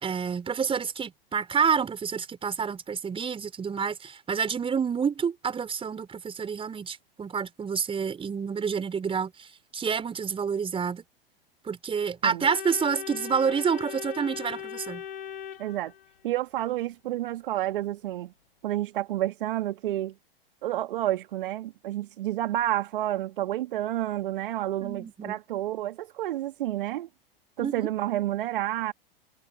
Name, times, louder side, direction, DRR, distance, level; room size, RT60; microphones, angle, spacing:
voice 1, 0.0-11.0 11.6-15.0 24.8-25.4 27.6-27.9, right 6 dB, 20° right, 4.7 m, -28 dB
Organ, 12.4-16.3, left 9 dB, 70° left, 3.1 m, -39 dB
voice 2, 15.6-15.9 16.2-18.3 18.6-20.1 20.6-27.1 27.6-28.9, right 14 dB, 60° right, 1.9 m, -30 dB
figure-of-eight pair, 95°, 30 cm